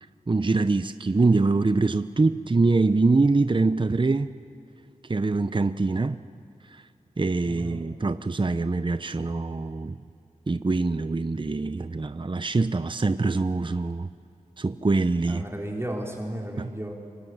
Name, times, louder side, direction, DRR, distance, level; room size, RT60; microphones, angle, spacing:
voice 1, 0.3-4.3 5.1-6.2 6.7-6.8 7.2-10.0 10.5-14.1 14.6-15.4 16.6-16.7, right 3 dB, 35° right, 11 dB, 0.7 m, -24 dB
voice 2, 7.4-7.8 15.2-16.9, right 1 dB, 20° right, -1 dB, 3.8 m, -34 dB
25.5 x 24.0 x 9.5 m, 2.6 s
cardioid pair, 45°, 14 cm